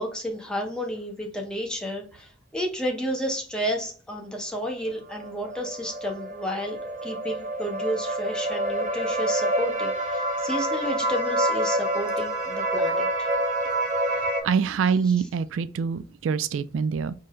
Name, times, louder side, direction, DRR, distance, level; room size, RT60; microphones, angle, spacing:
voice 1, 0.0-6.8 7.0-13.3 15.0-15.3, equal, 5° left, 0.8 m, -31 dB
sound 1, 5.1-14.4, right 1 dB, 40° right, 0.8 m, -27 dB
voice 2, 14.4-17.1, right 6 dB, 80° right, 0.3 m, -25 dB
3.8 x 2.6 x 4.2 m
head